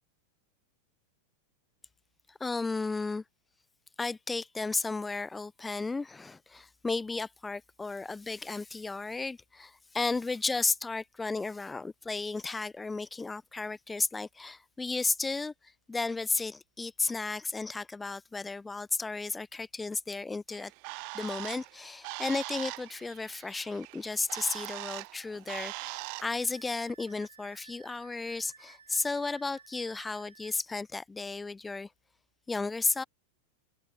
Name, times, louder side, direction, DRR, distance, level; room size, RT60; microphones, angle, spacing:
voice 1, 2.3-3.2 4.0-15.5 15.9-20.7 21.1-31.9 32.5-33.0, left 3 dB, 10° left, 0.8 m, -34 dB
Bird, 20.5-26.4, right 40 dB or more, 45° right, 0.3 m, -41 dB
Wind instrument woodwind instrument, 25.8-30.6, right 6 dB, 70° right, 5.4 m, -56 dB
figure-of-eight pair, 90°, 0 cm